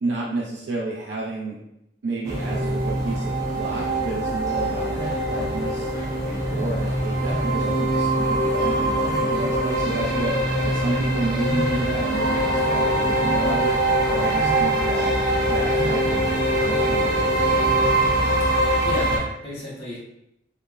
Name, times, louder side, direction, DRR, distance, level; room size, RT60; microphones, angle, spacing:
voice 1, 0.0-1.6 2.0-5.9 6.3-13.8 14.1-15.1 15.4-17.7, right 3 dB, 80° right, -4 dB, 0.4 m, -31 dB
sound 1, 2.2-19.2, right 1 dB, 20° right, 0.5 m, -23 dB
voice 2, 18.4-20.0, left 1 dB, 35° left, -5 dB, 0.8 m, -34 dB
2.9 x 2.0 x 2.3 m, 0.80 s
head